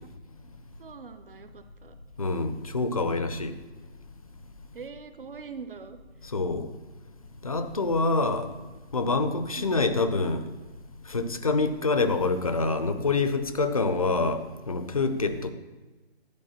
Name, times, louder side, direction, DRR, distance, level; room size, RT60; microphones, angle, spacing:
voice 1, 0.8-2.0 3.0-3.3 4.7-6.0 9.6-9.8 15.4-15.5, right 5 dB, 55° right, 0.7 m, -43 dB
voice 2, 2.2-3.6 6.3-6.7 7.4-8.5 8.9-10.4 11.1-15.5, left 3 dB, 35° left, 0.4 m, -26 dB
11.0 x 4.4 x 4.2 m
figure-of-eight pair, 150°, 32 cm